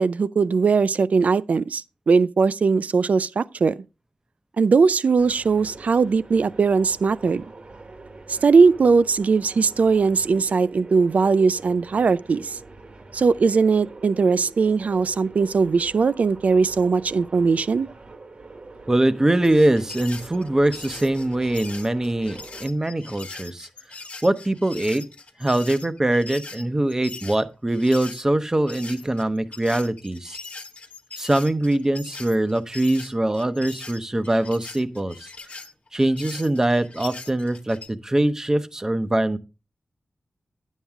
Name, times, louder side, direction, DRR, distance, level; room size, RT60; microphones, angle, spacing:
voice 1, 0.0-3.8 4.6-7.4 8.3-12.6 13.1-17.9, right 4 dB, 65° right, 0.4 m, -20 dB
sound 1, 5.2-22.7, right 3 dB, 50° right, 1.3 m, -44 dB
voice 2, 18.9-23.7 24.2-25.0 25.4-30.4 31.2-35.3 35.9-39.4, right 1 dB, 20° right, 0.7 m, -22 dB
sound 2, 19.4-28.2 28.7-37.9, left 3 dB, 60° left, 1.2 m, -40 dB
9.9 x 7.3 x 3.5 m
wide cardioid pair, 95°, 3 cm